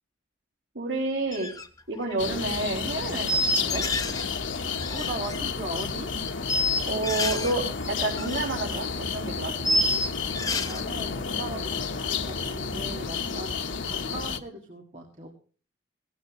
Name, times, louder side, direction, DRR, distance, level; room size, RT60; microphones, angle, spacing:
voice 1, 0.7-1.5 1.9-3.8 6.8-8.9 9.1-9.5, right 2 dB, 90° right, -4 dB, 4.2 m, -29 dB
sound 1, 1.3-1.7 1.9-2.2 3.3-4.3 4.5-5.4 6.3-7.5 7.8-8.5 8.7-8.8 9.6-10.8, left 1 dB, 20° left, 1.2 m, -28 dB
sound 2, 2.2-14.4, left 5 dB, 90° left, 1.2 m, -31 dB
voice 2, 4.9-6.1 10.6-15.3, right 1 dB, 35° right, 1 dB, 2.1 m, -39 dB
18.5 x 15.5 x 3.1 m, 0.39 s
head